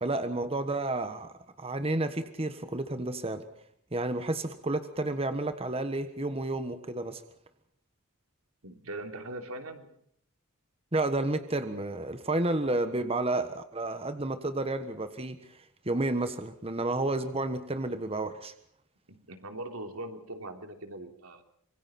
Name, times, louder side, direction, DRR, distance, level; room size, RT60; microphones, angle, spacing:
voice 1, 0.0-3.4 3.9-7.2 10.9-15.6 15.8-18.5, right 2 dB, 25° right, 9 dB, 1.4 m, -31 dB
voice 2, 8.6-10.0 19.1-21.4, right 1 dB, 85° right, 5 dB, 3.3 m, -41 dB
26.5 x 23.5 x 4.4 m, 0.70 s
head